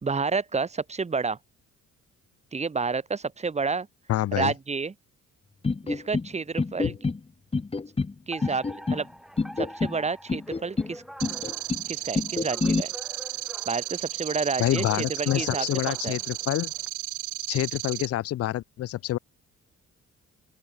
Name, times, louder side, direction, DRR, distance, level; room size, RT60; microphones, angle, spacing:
voice 1, 0.0-1.4 2.5-3.9 4.3-4.9 5.8-7.0 8.3-9.1 9.6-11.0 11.9-12.9 13.7-16.2, right 4 dB, 20° right, 1.0 m, -30 dB
voice 2, 4.1-4.5 6.8-6.9 14.6-16.7 17.5-19.2, left 13 dB, 55° left, 0.5 m, -27 dB
sound 1, 5.6-6.3 6.6-7.2 7.5-8.1 8.4-9.0 9.4-10.0 10.3-10.9 11.2-11.8 12.1-12.8, left 4 dB, 20° left, 1.2 m, -27 dB
Alarm, 8.3-16.9, equal, ahead, 4.4 m, -45 dB
sound 2, 11.2-18.1, right 18 dB, 75° right, 0.5 m, -34 dB
open air
cardioid pair, 90°, 30 cm